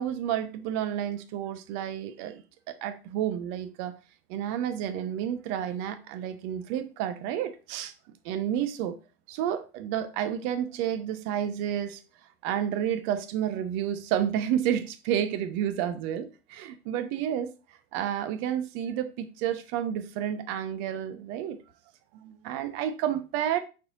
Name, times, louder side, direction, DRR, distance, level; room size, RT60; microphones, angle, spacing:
voice 1, 0.0-4.0 4.3-7.9 8.2-9.0 9.3-12.0 12.4-17.5 17.9-21.6 22.1-23.6, right 10 dB, 40° right, 0.6 m, -30 dB
4.3 x 4.2 x 2.6 m
figure-of-eight pair, 90°, 32 cm